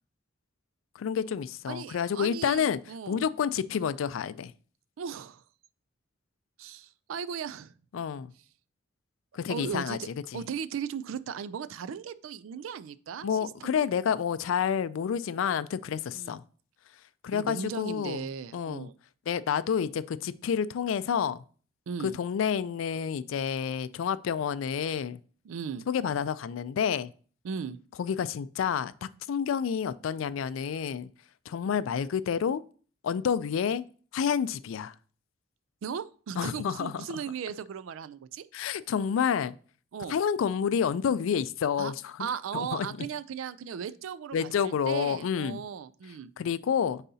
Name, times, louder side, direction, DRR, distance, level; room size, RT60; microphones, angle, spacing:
voice 1, 1.0-2.8 3.1-4.5 7.9-8.3 9.3-10.0 10.3-10.4 13.2-16.4 17.2-18.9 19.3-21.4 22.0-25.2 25.9-27.1 28.0-31.1 31.5-32.6 33.0-33.8 34.1-34.9 36.4-37.0 38.5-39.6 40.1-42.3 42.5-42.9 44.3-45.6 46.4-47.0, left 7 dB, 75° left, 0.3 m, -29 dB
voice 2, 1.7-3.2 5.0-5.4 6.6-7.7 9.5-10.1 10.3-13.9 16.1-16.4 17.3-18.9 21.9-22.2 25.4-25.8 27.4-27.8 35.8-38.5 39.9-40.2 41.8-41.9 42.2-46.3, right 7 dB, 80° right, 0.4 m, -37 dB
9.1 x 4.1 x 2.7 m
head